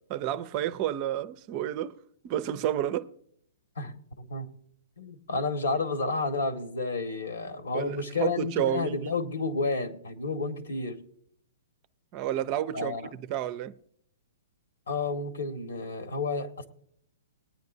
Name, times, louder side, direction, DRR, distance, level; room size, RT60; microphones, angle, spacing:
voice 1, 0.1-2.0 2.2-3.1 7.7-9.1 12.1-13.7, right 11 dB, 30° right, 0.5 m, -30 dB
voice 2, 3.8-4.5 5.0-11.0 12.7-13.0 14.9-16.7, left 3 dB, 85° left, 1.9 m, -31 dB
21.0 x 9.6 x 2.7 m
hypercardioid pair, 165°, 0 cm